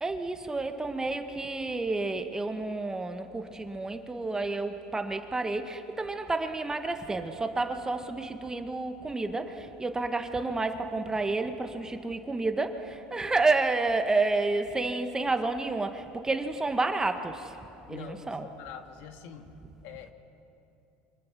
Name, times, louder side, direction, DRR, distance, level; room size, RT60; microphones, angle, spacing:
voice 1, 0.0-17.6 17.9-18.4, right 3 dB, 15° right, 6 dB, 1.7 m, -30 dB
voice 2, 17.9-20.1, left 7 dB, 70° left, 5 dB, 2.1 m, -45 dB
29.5 x 25.5 x 6.2 m, 2.8 s
supercardioid pair, 105°, 5 cm